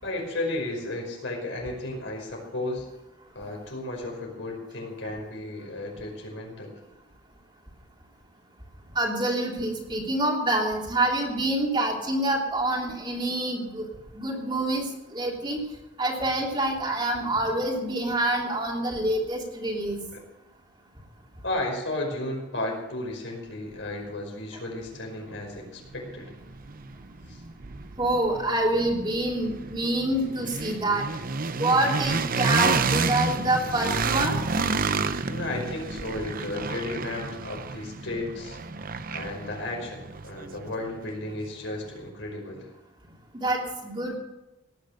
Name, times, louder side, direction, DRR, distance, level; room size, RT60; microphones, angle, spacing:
voice 1, 0.0-2.9 3.3-6.7 20.1-20.2 21.4-26.3 27.3-27.4 35.3-38.6 39.1-42.7, left 2 dB, 70° left, 1 dB, 5.4 m, -34 dB
voice 2, 8.9-13.9 14.1-15.6 16.0-20.0 28.0-31.1 31.6-34.4 43.3-44.2, right 1 dB, 25° right, -1 dB, 3.2 m, -26 dB
sound 1, 25.0-25.1 25.5-41.5, right 4 dB, 45° right, 0.8 m, -30 dB
18.0 x 10.5 x 6.6 m, 0.96 s
head